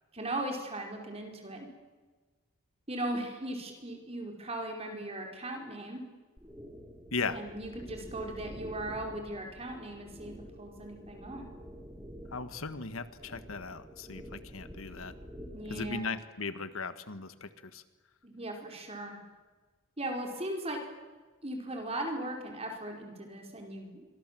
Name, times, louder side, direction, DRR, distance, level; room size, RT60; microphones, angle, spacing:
voice 1, 0.1-1.7 2.9-6.0 7.2-10.3 10.6-11.4 15.5-16.1 18.2-19.2 20.0-20.8 21.4-24.1, right 1 dB, 30° right, 2 dB, 4.9 m, -38 dB
sound 1, 6.4-16.0, equal, 10° right, 3.5 m, -48 dB
voice 2, 12.3-15.1 15.7-17.8, left 4 dB, 85° left, 12 dB, 1.5 m, -37 dB
27.0 x 25.0 x 7.7 m, 1.3 s
head